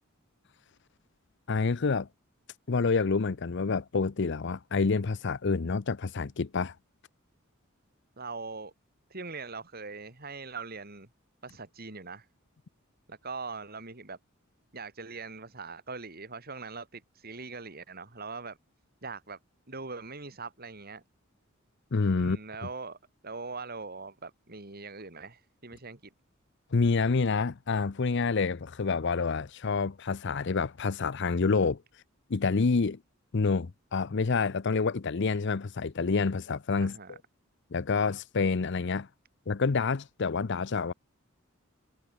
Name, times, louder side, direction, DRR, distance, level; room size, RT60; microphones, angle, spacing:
voice 1, 1.5-2.1 2.7-6.7 21.9-22.4 26.7-31.8 32.3-33.0 33.3-37.2 37.7-39.1 39.5-40.9, left 4 dB, 60° left, 0.6 m, -28 dB
voice 2, 8.2-8.7 9.1-11.1 11.4-12.3 13.1-14.2 14.7-18.6 19.0-19.4 19.7-21.0 22.2-23.0 23.2-26.1 36.8-37.2, right 4 dB, 50° right, 3.3 m, -41 dB
head